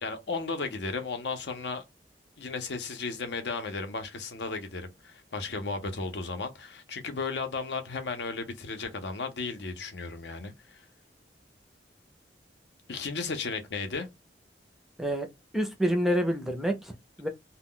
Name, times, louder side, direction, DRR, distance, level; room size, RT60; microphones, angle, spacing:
voice 1, 0.0-1.8 2.4-10.8 12.9-14.1, left 4 dB, 80° left, 0.6 m, -34 dB
voice 2, 15.5-17.3, equal, ahead, 0.4 m, -28 dB
2.2 x 2.1 x 3.6 m
head